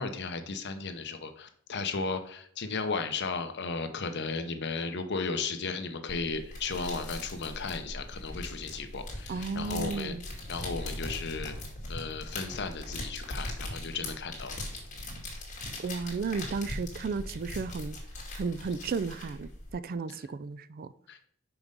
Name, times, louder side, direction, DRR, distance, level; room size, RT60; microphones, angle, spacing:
voice 1, 0.0-10.1 10.5-11.6 11.9-14.6 20.1-20.3 21.1-21.2, left 4 dB, 50° left, 0.8 m, -35 dB
sound 1, 6.1-19.7, left 1 dB, 35° left, 2.2 m, -40 dB
voice 2, 9.3-10.2 15.8-18.0 18.4-20.9, right 4 dB, 45° right, 0.3 m, -34 dB
5.9 x 5.3 x 5.2 m
head